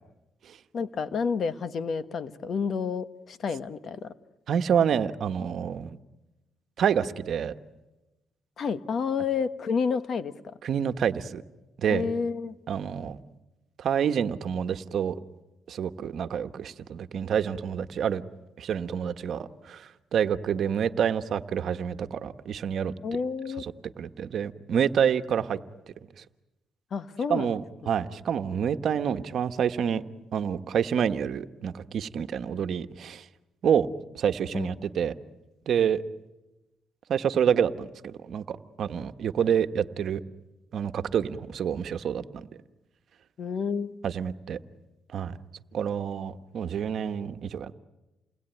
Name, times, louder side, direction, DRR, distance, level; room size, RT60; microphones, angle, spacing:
voice 1, 0.7-4.1 8.6-10.5 11.9-12.5 23.0-23.6 26.9-27.6 34.5-34.7 43.4-43.9, left 5 dB, 55° left, 11 dB, 1.4 m, -30 dB
voice 2, 4.5-6.0 6.8-7.5 10.6-11.4 11.8-12.1 12.7-13.2 13.8-15.1 15.7-18.2 18.6-22.9 24.0-25.6 27.3-30.0 30.3-33.2 33.6-33.9 34.1-35.1 35.7-36.0 37.1-40.2 40.7-42.5 44.0-44.6 45.1-45.4 45.7-47.7, right 8 dB, 65° right, 9 dB, 1.2 m, -27 dB
29.5 x 20.5 x 9.2 m, 1.0 s
cardioid pair, 90°, 0 cm